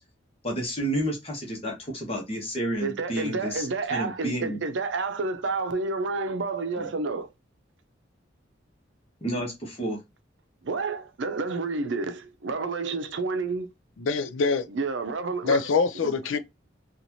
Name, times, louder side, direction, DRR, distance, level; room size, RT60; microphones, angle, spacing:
voice 1, 0.4-4.6 6.8-6.9 9.2-10.0, right 1 dB, 30° left, 1.2 m, -30 dB
voice 2, 2.8-7.3 10.6-13.7 14.7-15.6 16.0-16.1, right 3 dB, 70° right, 0.6 m, -30 dB
voice 3, 14.0-14.7 15.4-16.4, left 4 dB, 90° left, 0.4 m, -24 dB
4.0 x 2.5 x 2.9 m
head